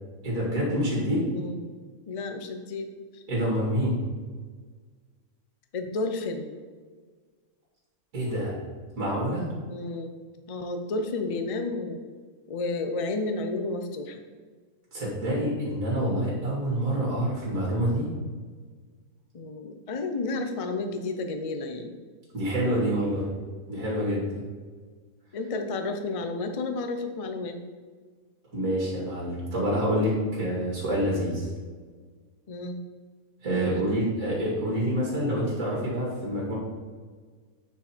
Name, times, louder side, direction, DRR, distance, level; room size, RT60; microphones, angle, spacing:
voice 1, 0.2-1.2 3.3-4.0 8.1-8.5 9.0-9.4 14.9-18.1 22.3-23.2 23.7-24.3 28.5-31.5 33.4-36.6, equal, 60° right, -5 dB, 2.7 m, -27 dB
voice 2, 1.3-1.6 2.1-3.2 5.7-6.5 9.7-10.1 10.5-12.0 12.5-14.2 19.3-21.9 25.3-27.6 32.5-32.8 33.5-33.7, left 3 dB, 45° left, 6 dB, 0.4 m, -31 dB
9.2 x 4.6 x 4.5 m, 1.5 s
omnidirectional pair, 1.6 m